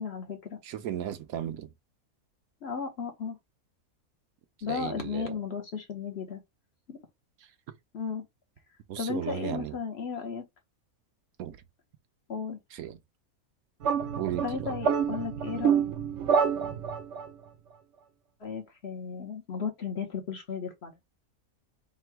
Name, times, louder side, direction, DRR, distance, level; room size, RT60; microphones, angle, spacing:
voice 1, 0.0-0.6 2.6-3.4 4.6-6.4 6.9-7.0 7.9-8.2 9.0-10.4 12.3-12.6 14.4-15.8 18.4-20.9, left 6 dB, 50° left, 1.0 m, -35 dB
voice 2, 0.6-1.7 4.6-5.4 8.9-9.8 11.4-11.6 12.7-13.0 14.2-14.7, right 10 dB, 80° right, 1.1 m, -35 dB
sound 1, 13.8-17.3, right 7 dB, 65° right, 0.9 m, -27 dB
3.6 x 2.3 x 4.5 m
omnidirectional pair, 1.5 m